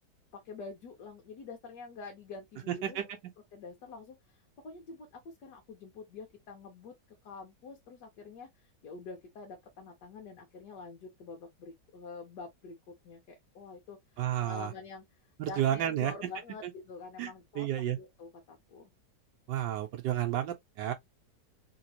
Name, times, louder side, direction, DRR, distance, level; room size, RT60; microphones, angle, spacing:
voice 1, 0.3-3.0 3.5-15.2 15.4-17.7 18.0-18.9, left 4 dB, 70° left, 1.5 m, -47 dB
voice 2, 2.7-3.0 14.2-14.7 15.4-16.1 17.2-18.0 19.5-20.9, right 11 dB, 85° right, 1.4 m, -31 dB
3.4 x 3.0 x 2.8 m
omnidirectional pair, 1.9 m